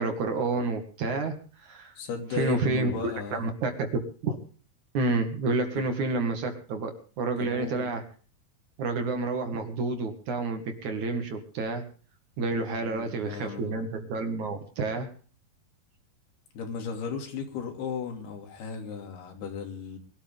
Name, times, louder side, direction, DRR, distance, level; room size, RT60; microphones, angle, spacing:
voice 1, 0.0-1.4 1.6-1.9 2.3-3.9 4.2-4.4 4.9-6.9 7.2-8.0 8.8-11.8 12.4-15.1, right 3 dB, 55° right, 6 dB, 3.0 m, -29 dB
voice 2, 2.0-3.5 5.7-5.8 7.3-7.9 12.7-13.7 16.5-20.0, left 6 dB, 80° left, 4 dB, 4.9 m, -36 dB
23.5 x 13.0 x 3.6 m, 0.41 s
omnidirectional pair, 4.6 m